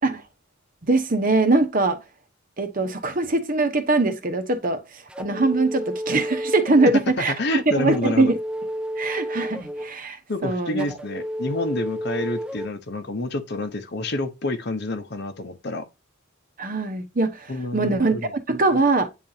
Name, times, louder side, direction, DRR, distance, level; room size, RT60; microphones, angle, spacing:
voice 1, 0.8-2.0 2.6-4.8 5.2-7.3 7.7-8.4 9.0-10.9 16.6-19.1, right 3 dB, 45° right, 1.0 m, -22 dB
sound 1, 5.1-7.0 7.9-9.9 10.8-12.7, equal, 5° right, 0.5 m, -31 dB
voice 2, 7.2-8.3 10.3-15.8 17.5-18.3, left 2 dB, 55° left, 0.9 m, -28 dB
9.0 x 4.1 x 2.8 m
head